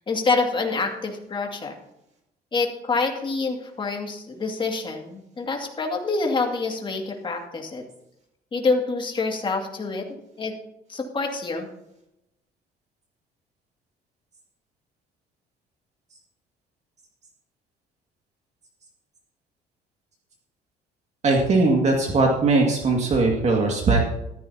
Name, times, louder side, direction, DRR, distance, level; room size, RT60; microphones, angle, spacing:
voice 1, 0.1-1.7 2.5-7.8 8.5-10.1 10.4-10.5 10.9-11.7, left 3 dB, 30° left, 2 dB, 2.3 m, -26 dB
voice 2, 21.2-24.2, right 3 dB, 40° right, 0 dB, 2.1 m, -20 dB
14.0 x 14.0 x 2.9 m, 0.86 s
cardioid pair, 110°, 17 cm